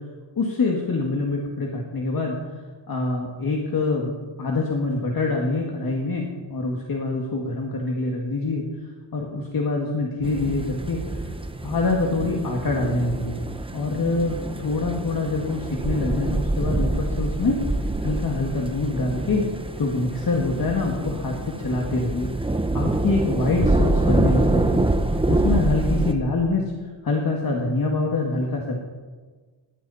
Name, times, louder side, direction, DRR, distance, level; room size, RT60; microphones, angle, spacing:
voice 1, 0.4-2.3 2.9-4.1 4.4-8.6 9.1-11.0 11.6-13.3 13.7-17.6 18.0-19.4 19.8-21.3 21.6-22.3 22.7-24.8 25.3-26.6 27.0-28.8, left 3 dB, 45° left, 0 dB, 2.1 m, -25 dB
sound 1, 10.2-26.1, right 2 dB, 10° right, 0.7 m, -26 dB
20.0 x 15.5 x 4.3 m, 1.4 s
wide cardioid pair, 175°, 48 cm